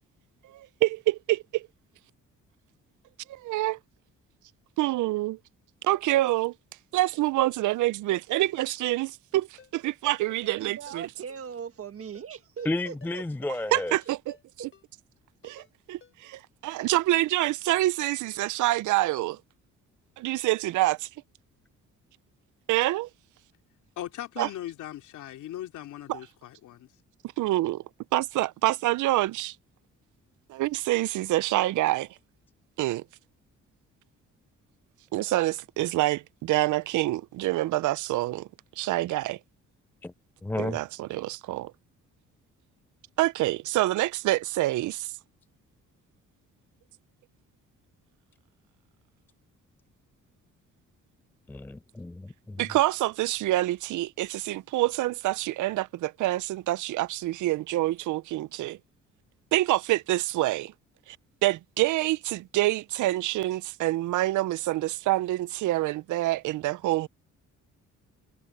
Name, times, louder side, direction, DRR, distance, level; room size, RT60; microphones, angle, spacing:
voice 1, 0.5-1.7 3.3-3.8 4.8-5.4 5.8-6.5 6.9-9.5 9.7-11.1 13.7-14.2 15.4-19.4 20.2-21.1 22.7-23.1 24.4-24.5 26.1-26.2 27.4-27.8 28.1-29.5 30.5-32.1 32.8-33.0 35.1-38.5 38.8-39.4 40.6-41.7 43.2-45.1 52.6-58.8 59.5-60.7 61.1-61.2 61.4-67.1, right 16 dB, 75° right, 0.6 m, -26 dB
Ringtone, 9.6-9.7 10.3-10.6 10.9-11.0 11.3-11.4 12.0-12.3 12.6-12.7 13.0-13.1 13.7-14.0 14.3-14.4 14.7-14.8 15.4-15.7 16.0-16.1, left 6 dB, 40° left, 4.6 m, -54 dB
voice 2, 10.6-13.2 13.7-13.8 14.6-14.7, right 7 dB, 50° right, 1.7 m, -40 dB
voice 3, 12.6-14.0 40.0-40.1 40.4-40.8 51.5-52.6, left 2 dB, 5° left, 0.3 m, -32 dB
voice 4, 24.0-26.9, left 13 dB, 80° left, 2.8 m, -39 dB
cardioid pair, 90°, 30 cm